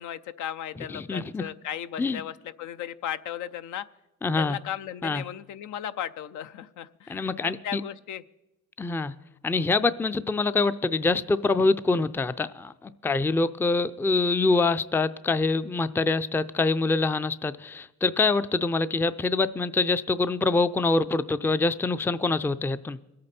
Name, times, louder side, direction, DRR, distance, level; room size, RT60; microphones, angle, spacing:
voice 1, 0.0-3.9 4.2-8.2, left 10 dB, 75° left, 12 dB, 0.6 m, -36 dB
voice 2, 0.8-1.4 2.0-2.2 4.2-4.6 5.0-5.2 7.1-7.8 8.8-9.1 9.4-23.0, left 3 dB, 10° left, 14 dB, 0.4 m, -25 dB
22.5 x 8.7 x 4.3 m, 0.97 s
cardioid pair, 90°, 30 cm